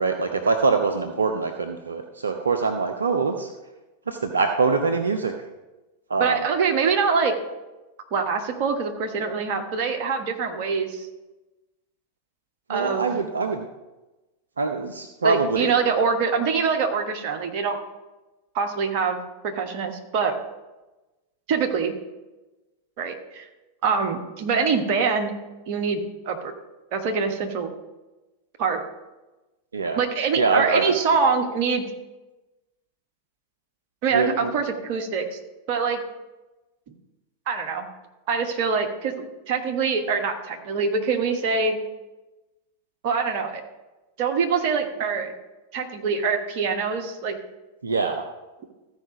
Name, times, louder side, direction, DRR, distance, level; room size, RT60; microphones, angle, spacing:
voice 1, 0.0-3.5 4.1-5.3 6.1-6.4 12.7-13.7 14.6-15.7 29.7-30.0 30.4-30.8 34.1-34.5 47.8-48.2, right 4 dB, 75° right, 5 dB, 0.6 m, -24 dB
voice 2, 6.2-7.3 8.1-11.1 12.7-13.1 15.2-17.8 18.5-20.4 21.5-21.9 23.0-23.5 23.8-25.3 25.7-26.5 26.9-27.7 28.6-28.8 29.9-31.8 34.0-35.4 35.7-36.0 37.5-37.9 38.3-41.8 43.0-43.6 44.2-45.3 45.7-47.4, right 5 dB, 45° right, 4 dB, 1.3 m, -24 dB
14.0 x 4.9 x 5.2 m, 1.1 s
figure-of-eight pair, 90°, 0 cm